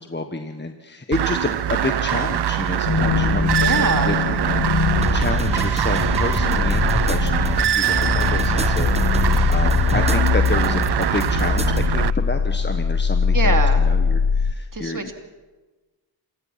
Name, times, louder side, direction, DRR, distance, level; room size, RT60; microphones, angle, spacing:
voice 1, 0.0-15.1, left 2 dB, 25° left, 6 dB, 1.5 m, -29 dB
sound 1, 1.1-12.1, right 10 dB, 65° right, 0.6 m, -23 dB
sound 2, 2.9-14.5, left 5 dB, 55° left, 1.2 m, -22 dB
voice 2, 3.6-4.2 13.3-13.9 14.7-15.1, right 3 dB, 45° right, 5 dB, 2.8 m, -24 dB
sound 3, 4.9-11.9, right 2 dB, 15° right, 1.2 m, -28 dB
27.0 x 16.5 x 5.9 m, 1.2 s
cardioid pair, 40°, 43 cm